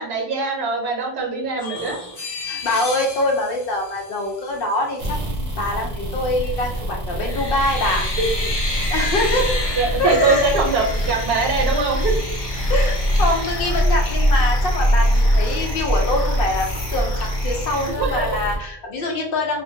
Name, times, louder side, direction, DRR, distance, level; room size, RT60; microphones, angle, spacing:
voice 1, 0.0-2.0 8.2-8.3 9.7-12.1 18.0-18.4, right 3 dB, 80° right, 1 dB, 0.9 m, -22 dB
sound 1, 1.6-4.6 6.4-6.8 7.2-14.4 14.9-15.0 15.2-16.1 16.5-17.0, left 2 dB, 35° left, 0.4 m, -32 dB
voice 2, 2.4-8.1 8.9-9.5 10.0-10.6 12.7-19.6, left 2 dB, 65° left, 1 dB, 0.7 m, -24 dB
sound 2, 5.0-18.6, equal, 45° right, 0.7 m, -23 dB
sound 3, 10.3-17.9, left 1 dB, 5° left, 0.8 m, -35 dB
2.3 x 2.1 x 2.6 m, 0.73 s
omnidirectional pair, 1.1 m